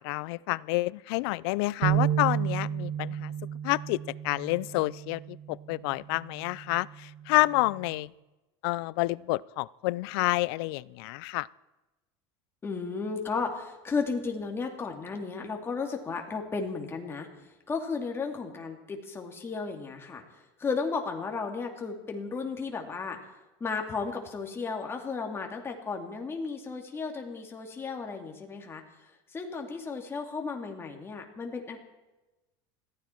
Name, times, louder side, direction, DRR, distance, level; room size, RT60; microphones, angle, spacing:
voice 1, 0.0-3.3 3.6-4.0 4.2-5.2 5.5-8.1 8.6-11.5, left 22 dB, 75° left, 22 dB, 0.4 m, -29 dB
sound 1, 1.8-8.1, right 10 dB, 90° right, 1.5 m, -33 dB
voice 2, 12.6-23.2 23.6-31.8, left 4 dB, 20° left, 2 dB, 2.4 m, -34 dB
21.0 x 14.5 x 4.5 m, 1.1 s
supercardioid pair, 140°, 13 cm